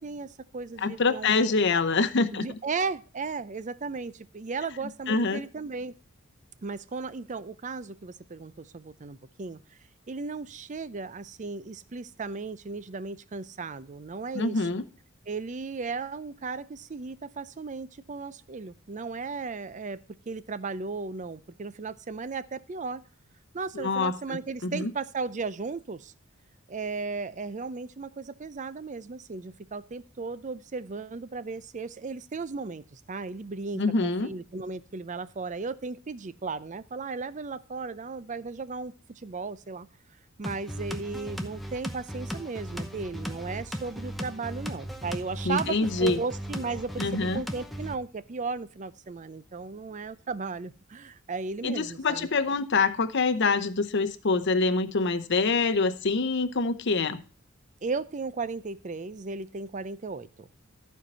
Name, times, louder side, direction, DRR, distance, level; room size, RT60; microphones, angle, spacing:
voice 1, 0.0-1.3 2.3-5.9 6.6-9.6 10.1-14.7 15.3-20.0 20.3-23.0 23.5-26.1 26.7-39.9 40.4-52.3 57.8-60.5, right 4 dB, 35° right, 16 dB, 0.5 m, -35 dB
voice 2, 0.8-2.6 5.1-5.4 14.3-14.8 23.7-24.9 33.7-34.3 45.4-46.2 47.0-47.4 51.6-57.2, left 3 dB, 55° left, 10 dB, 0.8 m, -25 dB
sound 1, 40.4-47.9, equal, ahead, 0.8 m, -37 dB
13.5 x 4.6 x 5.3 m, 0.35 s
head